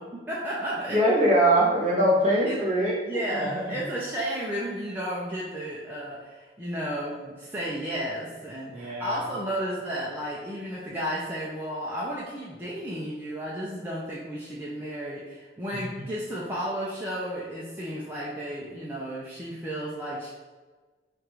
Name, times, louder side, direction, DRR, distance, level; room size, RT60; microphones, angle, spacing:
voice 1, 0.3-1.0 2.4-2.6 3.0-20.3, equal, 10° right, -7 dB, 0.5 m, -33 dB
voice 2, 0.9-3.8 8.7-9.3 15.7-15.8, right 1 dB, 40° right, -4 dB, 1.0 m, -23 dB
3.4 x 2.5 x 4.5 m, 1.3 s
head